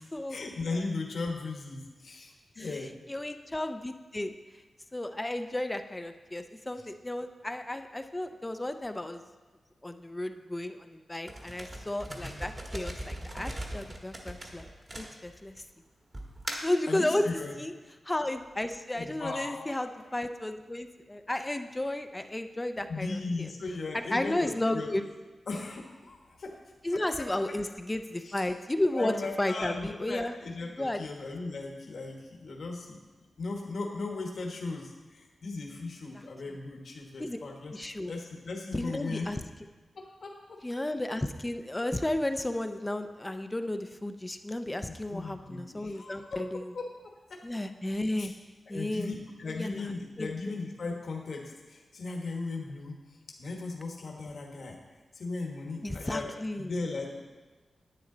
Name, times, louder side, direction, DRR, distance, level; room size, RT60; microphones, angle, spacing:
voice 1, 0.3-3.0 12.1-12.4 16.9-17.5 18.9-19.7 22.9-24.9 25.5-26.6 26.9-27.3 28.2-28.3 28.9-33.0 33.4-37.7 38.0-39.3 39.9-40.6 44.8-46.4 46.7-46.9 47.3-47.4 48.2-48.3 48.7-54.8 55.1-57.2, left 3 dB, 60° left, 1 dB, 1.3 m, -37 dB
voice 2, 2.6-4.3 4.9-9.2 9.8-14.6 15.0-15.6 16.6-17.3 17.6-17.7 18.0-23.5 23.9-25.0 26.8-30.3 30.8-31.0 36.1-36.2 37.2-37.4 37.7-38.1 38.7-39.4 40.6-46.7 47.4-48.3 48.7-49.1 49.6-49.8 50.2-50.3 55.8-56.7, left 1 dB, 15° left, 8 dB, 0.4 m, -33 dB
sound 1, 11.3-15.6 16.1-16.8, right 1 dB, 30° right, 1.3 m, -39 dB
10.5 x 9.2 x 3.9 m, 1.3 s
wide cardioid pair, 160°, 0 cm